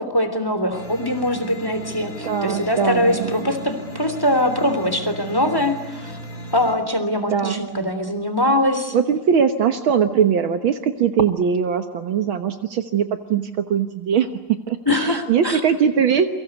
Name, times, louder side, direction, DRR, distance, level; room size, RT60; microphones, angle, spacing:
voice 1, 0.0-6.2 6.5-8.9 14.9-15.6, left 1 dB, 5° left, 10 dB, 2.8 m, -22 dB
sound 1, 0.7-6.8, equal, 25° left, 5.8 m, -35 dB
voice 2, 2.2-3.4 7.3-7.6 8.9-16.3, right 7 dB, 75° right, 8 dB, 1.1 m, -21 dB
29.0 x 24.5 x 8.1 m, 0.98 s
omnidirectional pair, 4.1 m